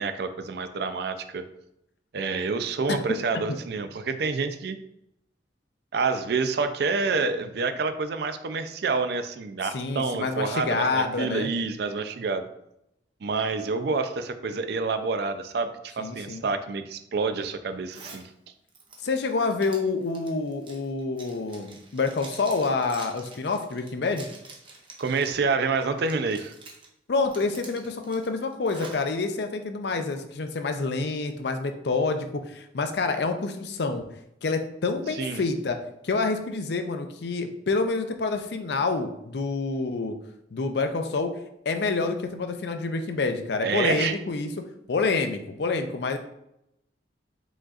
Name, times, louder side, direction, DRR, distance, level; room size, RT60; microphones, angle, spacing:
voice 1, 0.0-1.5 2.1-4.8 5.9-12.5 13.2-18.2 25.0-26.5 35.2-35.4 43.6-44.1, right 4 dB, 60° right, 9 dB, 0.4 m, -28 dB
voice 2, 9.7-11.5 16.0-16.5 19.0-24.3 27.1-34.1 34.4-35.8 36.0-40.2 40.5-41.3 41.7-44.5 44.9-46.2, left 3 dB, 65° left, 7 dB, 0.5 m, -27 dB
Zipper (clothing), 17.9-18.3 18.7-25.4 25.8-26.9 27.3-29.1, right 3 dB, 30° right, 0.7 m, -46 dB
5.0 x 3.9 x 2.4 m, 0.80 s
head